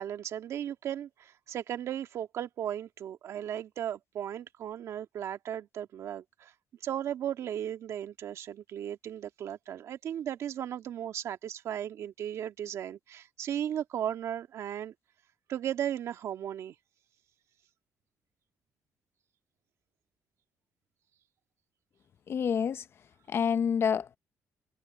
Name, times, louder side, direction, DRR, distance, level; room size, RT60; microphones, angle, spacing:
voice 1, 0.0-6.5 6.8-14.9 15.5-16.7, right 10 dB, 70° right, 2.0 m, -36 dB
voice 2, 22.3-22.8 23.3-24.2, left 7 dB, 50° left, 0.9 m, -28 dB
cardioid pair, 100°, 5 cm